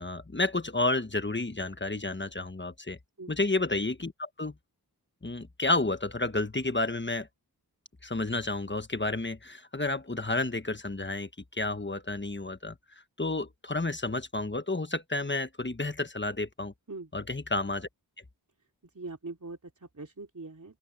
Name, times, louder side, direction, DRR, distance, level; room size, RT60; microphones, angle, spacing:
voice 1, 0.0-3.0 3.3-4.5 5.2-7.3 8.0-12.7 13.2-16.7 17.1-17.9, left 2 dB, 30° left, 1.3 m, -31 dB
voice 2, 18.9-20.8, right 3 dB, 50° right, 3.3 m, -42 dB
open air
wide cardioid pair, 60°, 38 cm